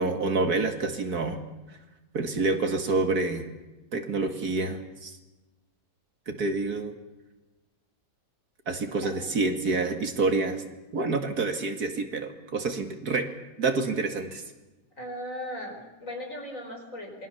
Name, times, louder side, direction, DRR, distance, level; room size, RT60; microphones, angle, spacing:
voice 1, 0.0-1.4 1.7-1.8 2.1-3.5 3.9-5.2 6.3-6.9 8.7-10.6 10.9-13.3 13.6-14.4, right 3 dB, 65° right, 6 dB, 2.6 m, -27 dB
voice 2, 15.0-17.3, equal, 50° left, 3 dB, 5.0 m, -37 dB
27.5 x 21.5 x 7.2 m, 1.1 s
omnidirectional pair, 1.8 m